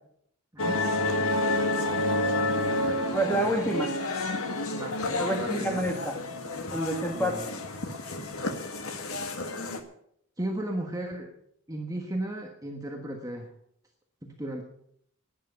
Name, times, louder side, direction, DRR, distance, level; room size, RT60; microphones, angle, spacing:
sound 1, 0.6-9.8, left 2 dB, 80° left, 1.7 m, -30 dB
voice 1, 2.2-3.5 4.7-5.8 7.1-7.5 10.4-11.3 11.7-13.5 14.2-14.6, right 1 dB, 15° right, 1 dB, 1.3 m, -36 dB
voice 2, 3.1-3.9 5.1-6.1 6.7-7.4, right 1 dB, 10° left, 3 dB, 2.1 m, -28 dB
12.0 x 10.5 x 8.0 m, 0.70 s
head